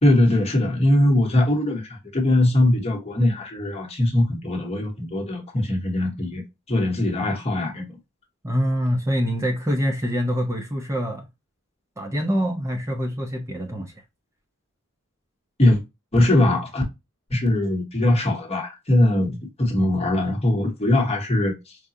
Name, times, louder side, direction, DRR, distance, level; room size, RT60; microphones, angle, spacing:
voice 1, 0.0-6.4 6.7-7.8 15.6-15.8 16.1-16.8 17.3-21.8, left 1 dB, 30° left, 1.1 m, -21 dB
voice 2, 8.4-11.3 12.0-13.9, equal, 15° right, 0.6 m, -25 dB
4.8 x 2.3 x 2.6 m
head